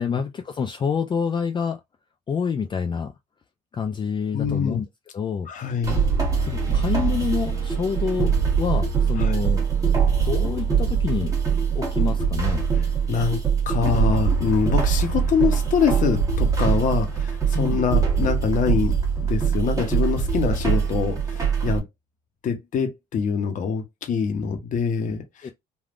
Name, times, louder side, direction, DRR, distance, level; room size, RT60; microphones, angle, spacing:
voice 1, 0.0-1.8 2.3-3.1 3.7-4.9 5.1-5.5 6.4-8.3 8.6-9.9 10.2-11.3 11.7-12.6 17.5-17.8 25.4-25.5, left 6 dB, 25° left, 0.4 m, -27 dB
voice 2, 4.3-4.8 5.5-6.0 9.2-9.4 13.1-13.4 13.7-18.9 19.2-21.8 22.4-25.5, left 6 dB, 50° left, 0.8 m, -24 dB
sound 1, 5.8-21.8, right 6 dB, 20° right, 1.2 m, -22 dB
3.4 x 2.4 x 2.4 m
cardioid pair, 110°, 17 cm